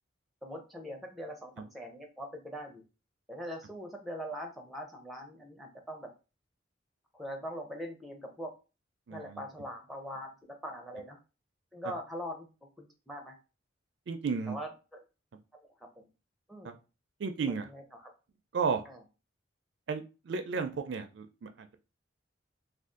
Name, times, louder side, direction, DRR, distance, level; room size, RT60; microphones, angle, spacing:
voice 1, 0.4-2.8 3.3-6.1 7.1-8.5 9.1-11.2 11.7-12.5 12.8-13.4 14.5-15.0 15.6-16.1 16.5-16.8 17.5-18.1 18.8-19.0, equal, ahead, 2 dB, 0.5 m, -42 dB
voice 2, 9.1-9.4 14.1-14.6 17.2-17.7 18.5-18.8 19.9-21.8, right 5 dB, 65° right, 7 dB, 0.4 m, -33 dB
2.5 x 2.4 x 3.6 m, 0.31 s
head